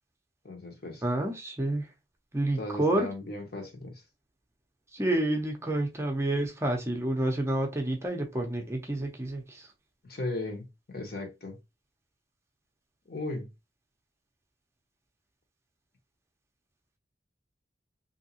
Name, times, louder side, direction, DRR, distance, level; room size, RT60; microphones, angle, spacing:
voice 1, 0.4-1.0 2.6-4.0 10.0-11.6 13.1-13.5, left 2 dB, 55° left, 1.1 m, -37 dB
voice 2, 1.0-1.9 2.3-3.1 4.9-9.7, right 1 dB, 15° right, 0.6 m, -29 dB
3.4 x 2.7 x 2.8 m
head